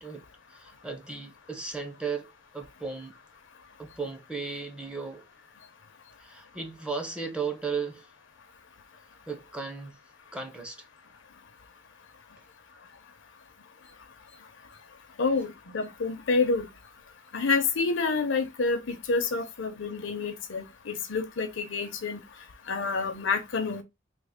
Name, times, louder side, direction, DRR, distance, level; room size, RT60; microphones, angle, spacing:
voice 1, 0.0-3.1 3.8-5.3 6.2-8.1 9.3-10.0 10.3-10.9, right 5 dB, 5° right, 0.5 m, -36 dB
voice 2, 15.2-16.7 17.3-22.2 22.7-23.8, left 4 dB, 70° left, 0.6 m, -28 dB
3.4 x 2.0 x 3.5 m
head